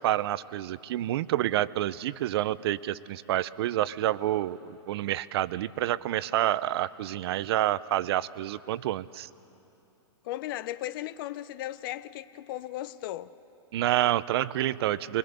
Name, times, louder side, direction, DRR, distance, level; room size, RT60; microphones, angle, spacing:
voice 1, 0.0-9.3 13.7-15.2, right 13 dB, 60° right, 0.5 m, -28 dB
voice 2, 10.2-13.3, left 14 dB, 50° left, 0.6 m, -36 dB
24.5 x 20.5 x 6.8 m
hypercardioid pair, 145°, 15 cm